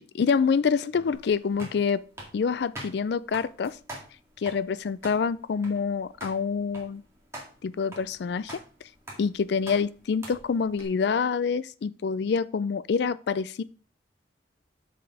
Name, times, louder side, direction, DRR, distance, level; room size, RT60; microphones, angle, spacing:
voice 1, 0.0-2.1 2.3-3.8 4.4-7.0 7.6-8.9 9.2-13.6, left 5 dB, 60° left, 0.3 m, -27 dB
sound 1, 1.1-10.8, right 1 dB, 15° right, 2.0 m, -45 dB
6.2 x 5.1 x 4.7 m
head